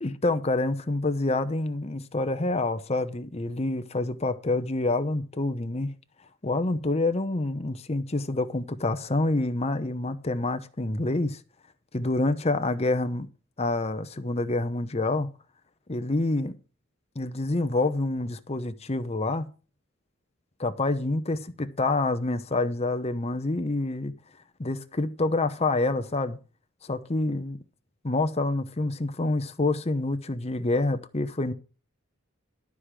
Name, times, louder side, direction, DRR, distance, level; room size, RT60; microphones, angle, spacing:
voice 1, 0.0-5.9 6.4-11.4 11.9-13.3 13.6-15.3 15.9-16.6 17.2-19.5 20.6-24.1 24.6-26.4 26.8-27.6 28.0-31.5, left 2 dB, 30° left, 0.8 m, -27 dB
12.0 x 4.9 x 7.4 m
head